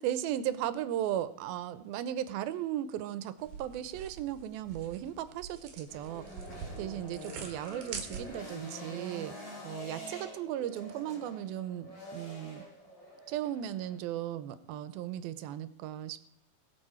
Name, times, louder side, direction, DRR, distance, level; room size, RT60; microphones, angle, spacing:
voice 1, 0.0-6.2 6.7-9.3 9.6-12.6 13.3-16.2, right 11 dB, 90° right, 14 dB, 2.5 m, -36 dB
sound 1, 3.4-8.6, right 6 dB, 60° right, 2.9 m, -45 dB
sound 2, 5.9-14.0, equal, 30° left, 3.4 m, -46 dB
22.0 x 7.4 x 4.4 m, 0.70 s
omnidirectional pair, 4.2 m